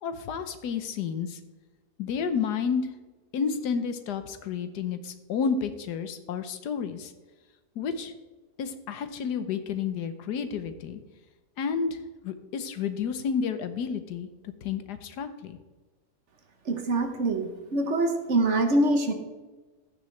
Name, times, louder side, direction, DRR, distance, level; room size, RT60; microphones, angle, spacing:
voice 1, 0.0-1.4 2.0-2.9 3.3-7.1 7.8-8.1 8.6-11.0 11.6-14.3 14.6-15.6, left 6 dB, 80° left, 10 dB, 1.4 m, -31 dB
voice 2, 16.7-19.1, right 2 dB, 50° right, 6 dB, 1.2 m, -24 dB
15.0 x 6.8 x 3.2 m, 1.2 s
omnidirectional pair, 1.7 m